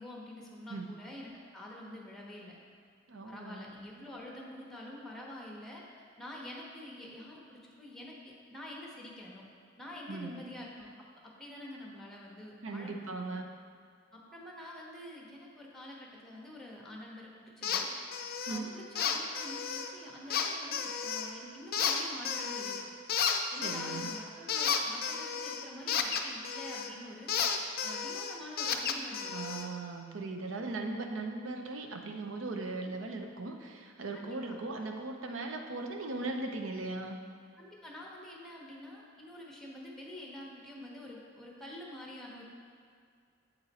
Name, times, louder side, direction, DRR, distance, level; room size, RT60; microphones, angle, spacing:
voice 1, 0.0-2.6 3.3-5.8 6.2-9.4 9.8-10.9 11.2-13.4 14.1-17.9 18.5-22.8 23.5-27.3 27.8-29.6 34.1-34.6 37.6-42.5, left 1 dB, ahead, -2 dB, 0.9 m, -47 dB
voice 2, 3.1-3.7 10.1-10.4 12.6-13.5 18.5-18.7 23.6-24.1 29.3-37.2, right 3 dB, 80° right, 3 dB, 0.6 m, -38 dB
sound 1, 17.6-17.8 18.1-18.6 19.0-19.9 20.3-21.3 21.7-22.8 23.1-26.9 27.3-29.7, left 7 dB, 50° left, 0.4 m, -33 dB
8.1 x 4.0 x 4.1 m, 2.2 s
head